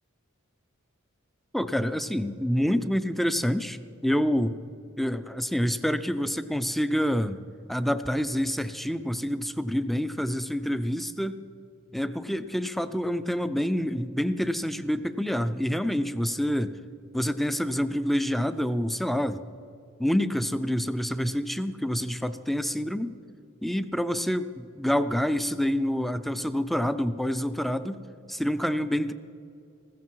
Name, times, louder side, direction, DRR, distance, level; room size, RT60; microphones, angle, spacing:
voice 1, 1.5-4.6 5.0-7.4 7.7-11.4 11.9-16.8 17.1-19.4 20.0-23.2 23.6-28.0 28.3-29.1, equal, ahead, 12 dB, 0.4 m, -27 dB
15.0 x 14.5 x 4.7 m, 2.5 s
head